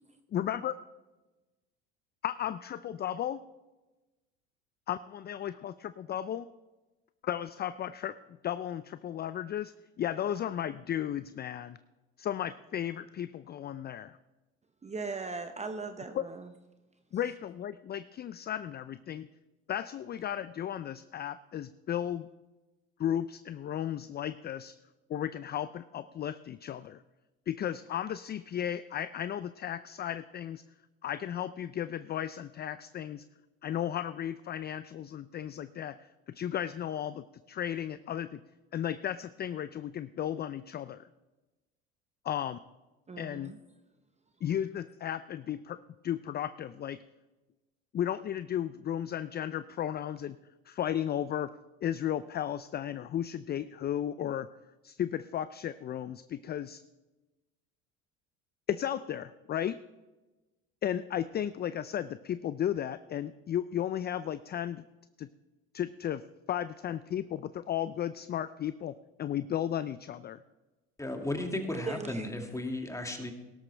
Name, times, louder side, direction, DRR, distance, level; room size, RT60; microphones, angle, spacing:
voice 1, 0.3-0.7 2.2-3.4 4.9-6.5 7.2-8.2 8.4-11.8 12.2-14.2 16.1-16.3 17.1-19.3 19.7-22.3 23.0-24.8 25.1-27.0 27.5-30.6 31.0-33.2 33.6-38.4 38.7-41.1 42.2-42.6 43.2-43.5 44.4-47.0 47.9-50.4 50.7-51.5 51.8-54.5 54.8-56.8 58.7-59.8 60.8-64.8 65.2-65.3 65.7-68.9 69.2-70.4, left 10 dB, 30° left, 14 dB, 0.4 m, -34 dB
voice 2, 14.8-16.5 43.1-43.6 71.9-72.3, right 4 dB, 20° right, 7 dB, 0.9 m, -38 dB
voice 3, 71.0-73.3, left 1 dB, 10° left, 3 dB, 2.2 m, -35 dB
17.0 x 12.5 x 3.4 m, 1.1 s
supercardioid pair, 85°, 32 cm